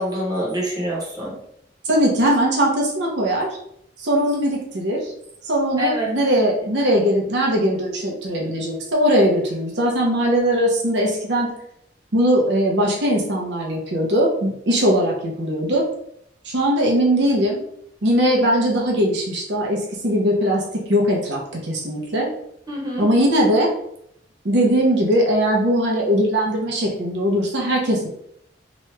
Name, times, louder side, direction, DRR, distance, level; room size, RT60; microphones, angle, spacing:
voice 1, 0.0-1.3 5.8-6.0 22.7-23.1, equal, 20° right, -5 dB, 1.0 m, -25 dB
voice 2, 1.8-3.5 4.0-5.1 5.4-11.5 12.1-15.9 16.5-17.6 18.0-22.3 23.0-23.7 24.4-28.1, equal, 75° right, -2 dB, 0.7 m, -20 dB
3.0 x 2.3 x 3.1 m, 0.71 s
head